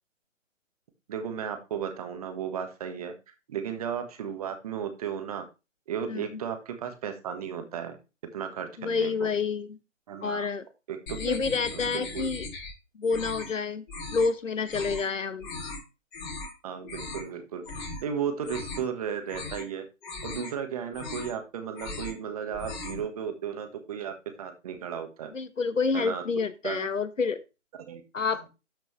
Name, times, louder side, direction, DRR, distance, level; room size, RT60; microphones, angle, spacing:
voice 1, 1.1-3.1 3.5-5.5 5.9-8.0 8.3-9.3 10.1-10.5 10.9-11.4 11.7-12.3 16.6-19.9 20.2-25.3 25.9-26.2 26.6-26.9 27.8-28.0 28.3-28.4, right 8 dB, 30° right, 7 dB, 1.3 m, -35 dB
voice 2, 8.8-9.7 10.2-10.6 11.2-12.5 12.9-13.8 14.1-15.5 25.3-27.4 28.1-28.5, left 4 dB, 80° left, 14 dB, 1.2 m, -28 dB
sound 1, 11.1-12.7 13.0-13.5 13.9-14.3 14.6-15.0 15.4-15.8 16.1-16.5 16.8-17.3 17.6-18.0 18.3-18.9 19.2-19.7 20.0-20.5 20.9-21.4 21.7-22.2 22.5-23.1, left 3 dB, 40° left, 5.2 m, -38 dB
12.5 x 5.2 x 3.2 m, 0.28 s
figure-of-eight pair, 150°, 38 cm